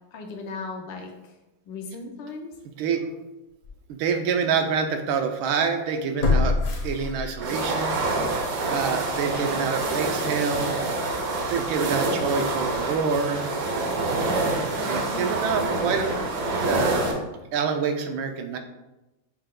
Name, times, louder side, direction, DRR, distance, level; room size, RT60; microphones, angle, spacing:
voice 1, 0.1-1.1 1.7-2.5 14.7-15.3, left 3 dB, 75° left, 2 dB, 1.3 m, -36 dB
voice 2, 2.6-3.0 3.9-6.6 6.8-8.0 8.7-10.8 11.5-13.5 14.8-16.1 16.7-17.0 17.5-18.6, right 6 dB, 85° right, 5 dB, 1.4 m, -26 dB
sound 1, 2.9-3.0 3.6-3.7 6.2-7.6 8.0-8.1, left 3 dB, 55° left, 1.1 m, -24 dB
sound 2, 7.4-17.1, right 2 dB, 65° right, 0.9 m, -27 dB
6.6 x 2.2 x 3.6 m, 1.0 s
omnidirectional pair, 2.2 m